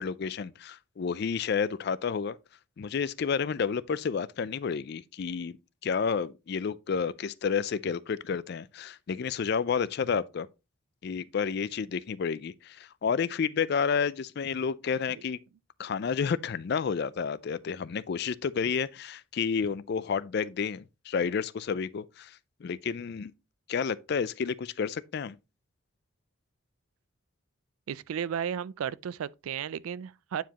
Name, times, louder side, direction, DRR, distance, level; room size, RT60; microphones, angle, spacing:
voice 1, 0.0-2.4 2.8-5.6 5.8-10.5 11.0-15.4 15.8-23.3 23.7-25.4, left 6 dB, 50° left, 0.3 m, -30 dB
voice 2, 27.9-30.4, right 8 dB, 85° right, 0.3 m, -34 dB
9.1 x 4.8 x 2.9 m
head